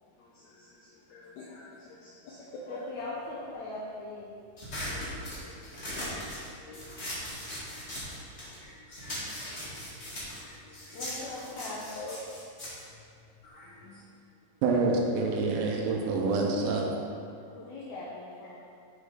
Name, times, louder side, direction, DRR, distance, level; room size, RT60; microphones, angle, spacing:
voice 1, 0.0-3.8 5.6-12.2 13.4-14.2, left 1 dB, 85° left, -4 dB, 1.6 m, -49 dB
voice 2, 2.7-4.3 10.9-11.9 17.5-18.6, left 2 dB, 70° left, -6 dB, 1.9 m, -40 dB
sound 1, 4.6-8.6 8.9-13.7, left 1 dB, 35° left, 1.1 m, -39 dB
voice 3, 14.6-16.9, right 3 dB, 85° right, 1 dB, 2.5 m, -27 dB
6.6 x 6.2 x 3.8 m, 2.4 s
omnidirectional pair, 4.1 m